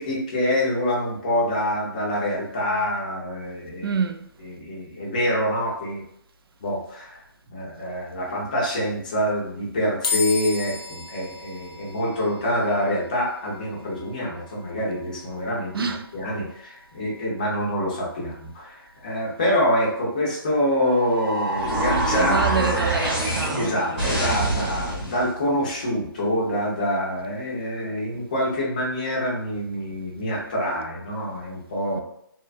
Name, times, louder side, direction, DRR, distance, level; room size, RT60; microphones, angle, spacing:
voice 1, 0.0-3.9 4.4-6.0 6.6-7.2 7.5-22.8 23.5-32.0, equal, 20° left, 0.5 m, -26 dB
voice 2, 3.8-4.3 15.7-16.1 22.1-24.0 31.9-32.0, right 5 dB, 75° right, 0.4 m, -27 dB
sound 1, 10.0-23.4, left 4 dB, 75° left, 0.5 m, -38 dB
sound 2, 20.7-25.3, right 2 dB, 5° right, 0.9 m, -25 dB
2.7 x 2.3 x 2.4 m
hypercardioid pair, 180°, 13 cm